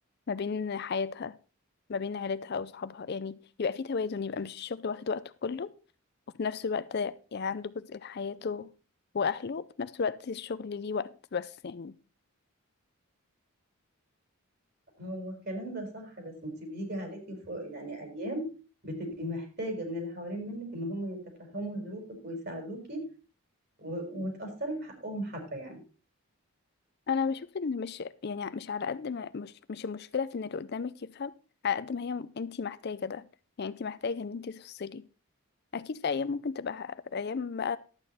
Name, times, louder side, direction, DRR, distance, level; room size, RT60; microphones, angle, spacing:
voice 1, 0.3-1.4 1.9-5.7 6.4-8.7 9.1-11.9 27.1-31.3 31.6-33.2 33.6-35.0 35.7-37.8, left 5 dB, 45° left, 0.4 m, -34 dB
voice 2, 15.0-18.4 18.8-21.2 21.5-23.0 23.8-25.8, right 1 dB, 45° right, 4.4 m, -37 dB
12.0 x 8.7 x 4.1 m
head